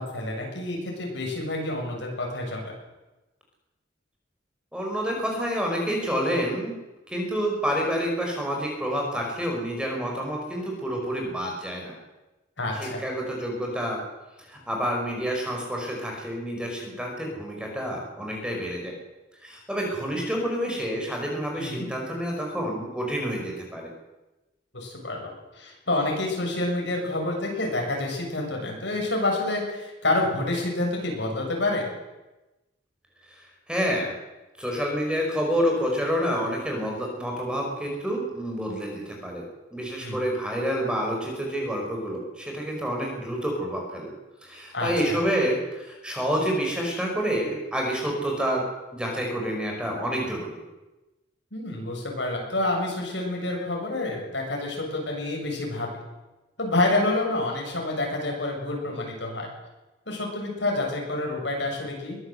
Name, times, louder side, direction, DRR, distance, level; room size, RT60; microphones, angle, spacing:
voice 1, 0.0-2.7 12.6-13.0 21.5-21.9 24.7-31.9 40.0-40.2 44.7-45.2 51.5-55.9 56.6-59.5 60.1-62.2, left 2 dB, 70° left, 0 dB, 7.2 m, -28 dB
voice 2, 4.7-6.8 7.1-11.9 12.7-14.0 14.5-18.9 19.4-23.9 33.3-34.1 34.6-39.4 39.7-44.1 44.4-48.6 48.9-50.5, equal, 5° right, 0 dB, 5.5 m, -28 dB
22.5 x 16.0 x 8.0 m, 1.1 s
head